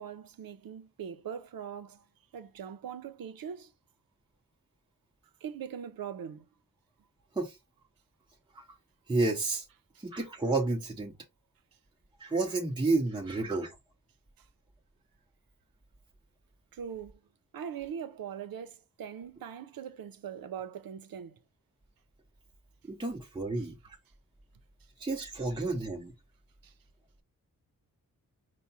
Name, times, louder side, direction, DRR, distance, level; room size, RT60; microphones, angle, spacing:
voice 1, 0.0-2.0 2.3-3.7 5.4-6.4 16.7-17.1 17.5-21.4 26.6-26.7, right 8 dB, 90° right, 0.6 m, -41 dB
voice 2, 9.1-9.6 10.0-11.1 12.2-13.7 22.9-23.7 25.0-26.1, right 3 dB, 15° right, 0.7 m, -30 dB
4.7 x 2.1 x 4.0 m
wide cardioid pair, 85°, 34 cm